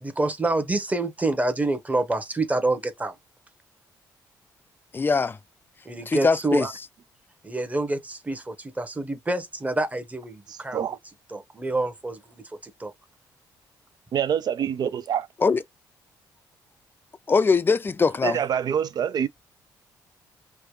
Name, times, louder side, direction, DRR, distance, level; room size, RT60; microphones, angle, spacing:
voice 1, 0.0-3.1 5.8-6.7 7.4-10.8 11.3-12.4 12.8-12.9, right 2 dB, 20° right, 1.0 m, -27 dB
voice 2, 4.9-5.4 6.1-6.7 15.4-15.6 17.3-18.4, left 4 dB, 25° left, 0.4 m, -21 dB
voice 3, 10.5-11.0 14.1-15.3 18.2-19.3, right 8 dB, 55° right, 0.4 m, -26 dB
3.4 x 2.1 x 3.1 m
supercardioid pair, 70°, 8 cm